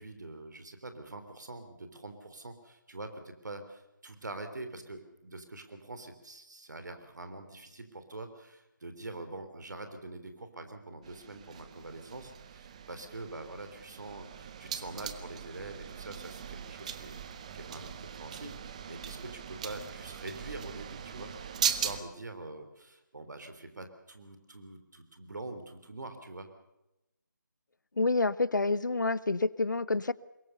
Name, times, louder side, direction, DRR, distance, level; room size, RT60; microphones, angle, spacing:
voice 1, 0.0-21.3 21.6-26.5, right 2 dB, 60° right, 8 dB, 3.5 m, -45 dB
sound 1, 11.0-22.0, right 8 dB, 20° right, 0.8 m, -39 dB
voice 2, 28.0-30.1, left 3 dB, 70° left, 20 dB, 0.8 m, -28 dB
22.5 x 20.0 x 6.8 m, 0.94 s
figure-of-eight pair, 160°, 11 cm